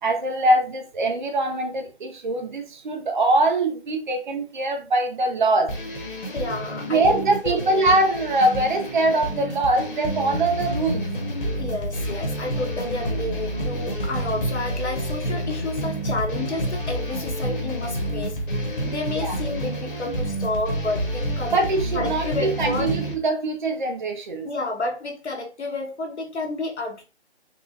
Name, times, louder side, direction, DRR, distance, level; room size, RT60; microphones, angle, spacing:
voice 1, 0.0-5.7 6.9-11.0 19.2-19.3 21.5-24.5, right 2 dB, 45° right, 0.7 m, -23 dB
sound 1, 5.7-23.1, equal, 50° left, 1.1 m, -29 dB
voice 2, 6.3-7.2 7.4-8.3 11.6-21.5 21.9-22.9 24.4-27.0, left 2 dB, 80° left, 1.2 m, -30 dB
4.1 x 2.3 x 2.8 m
figure-of-eight pair, 160°, 33 cm